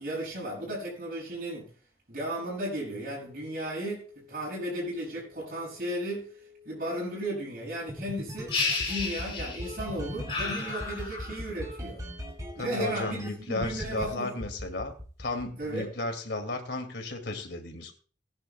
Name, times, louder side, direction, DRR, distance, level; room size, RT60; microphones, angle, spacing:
voice 1, 0.0-1.7 2.1-6.3 6.6-8.5 8.8-12.0 12.6-14.4 15.6-15.9, right 1 dB, 50° right, -6 dB, 7.5 m, -35 dB
sound 1, 2.4-14.5, left 7 dB, 80° right, 5.8 m, -56 dB
sound 2, 7.9-13.3 13.6-14.1 14.4-15.9, equal, 20° right, 2.6 m, -39 dB
sound 3, 8.5-9.8 10.3-11.5, left 4 dB, 30° left, 4.3 m, -32 dB
voice 2, 12.6-14.9 15.2-17.9, left 2 dB, 80° left, 5 dB, 2.5 m, -34 dB
19.5 x 10.5 x 2.3 m, 0.41 s
head